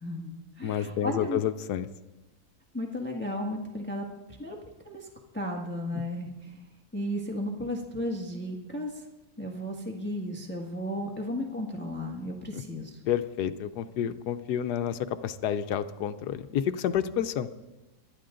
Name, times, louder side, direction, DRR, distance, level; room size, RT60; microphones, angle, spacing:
voice 1, 0.0-1.4 2.7-4.1 4.4-4.5 4.8-5.1 5.3-6.7 6.9-9.0 9.4-13.0, left 1 dB, 5° left, 0 dB, 1.5 m, -34 dB
voice 2, 0.6-1.9 12.5-12.6 13.1-17.5, left 9 dB, 80° left, 10 dB, 1.3 m, -29 dB
24.5 x 12.0 x 3.8 m, 1.1 s
omnidirectional pair, 1.7 m